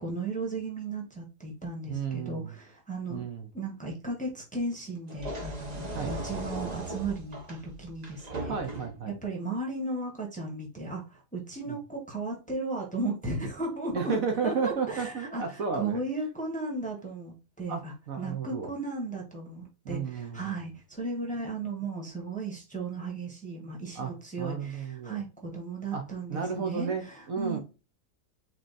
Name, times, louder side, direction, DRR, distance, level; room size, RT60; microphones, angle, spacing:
voice 1, 0.0-3.2 3.5-8.6 9.1-15.4 15.7-27.6, right 2 dB, 5° left, 1.0 m, -35 dB
voice 2, 1.9-2.5 3.1-3.5 5.9-6.2 8.5-9.2 11.6-11.8 13.9-16.0 17.7-18.7 19.8-20.6 23.9-25.2 25.9-27.6, right 5 dB, 60° right, 1.2 m, -33 dB
sound 1, 5.1-9.1, right 2 dB, 40° right, 0.6 m, -38 dB
4.0 x 3.3 x 4.0 m
omnidirectional pair, 1.7 m